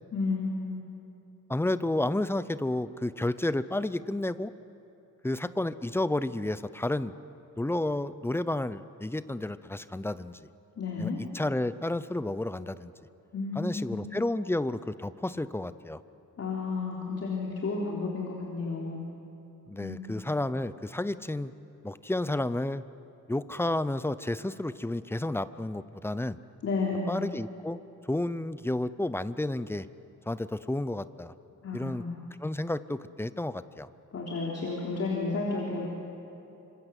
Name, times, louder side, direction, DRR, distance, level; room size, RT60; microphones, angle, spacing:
voice 1, 0.1-0.8 10.8-11.2 13.3-14.0 16.4-19.0 19.8-20.1 26.6-27.1 31.6-32.2 34.1-35.9, left 3 dB, 45° left, -3 dB, 3.5 m, -32 dB
voice 2, 1.5-4.5 5.2-7.1 7.6-10.4 11.0-12.9 13.6-16.0 19.7-21.5 21.8-22.8 23.3-26.4 27.1-27.8 28.1-29.9 30.3-31.3 31.7-32.0 32.4-33.9, left 1 dB, 5° left, 14 dB, 0.5 m, -31 dB
26.5 x 26.0 x 8.2 m, 2.9 s
wide cardioid pair, 160°, 33 cm